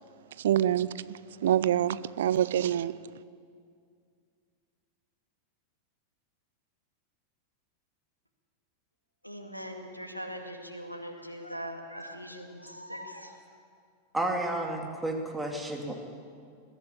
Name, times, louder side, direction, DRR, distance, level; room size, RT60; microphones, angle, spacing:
voice 1, 0.4-2.9, right 11 dB, 60° right, 18 dB, 0.5 m, -26 dB
voice 2, 9.2-13.4, equal, 90° left, 3 dB, 2.2 m, -41 dB
voice 3, 14.1-16.0, right 1 dB, 5° right, 1 dB, 2.9 m, -31 dB
21.0 x 14.5 x 8.6 m, 2.2 s
figure-of-eight pair, 90°, 0 cm